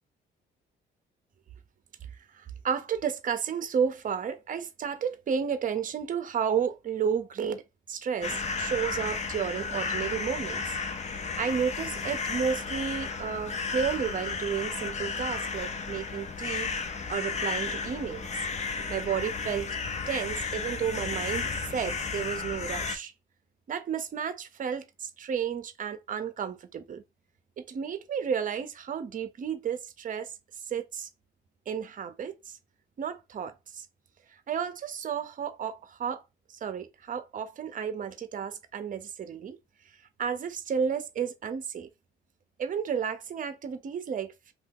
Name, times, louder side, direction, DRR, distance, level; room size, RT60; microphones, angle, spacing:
voice 1, 2.3-7.6 7.9-10.6 11.4-16.7 17.1-19.7 20.1-23.1 23.7-27.0 27.6-30.3 30.7-31.1 31.7-32.6 33.0-33.9 34.5-36.2 36.5-39.6 40.2-41.9 42.6-44.5, right 7 dB, 45° right, 0.6 m, -32 dB
sound 1, 8.2-23.0, left 4 dB, 35° left, 0.5 m, -33 dB
2.7 x 2.3 x 3.6 m
cardioid pair, 90°, 20 cm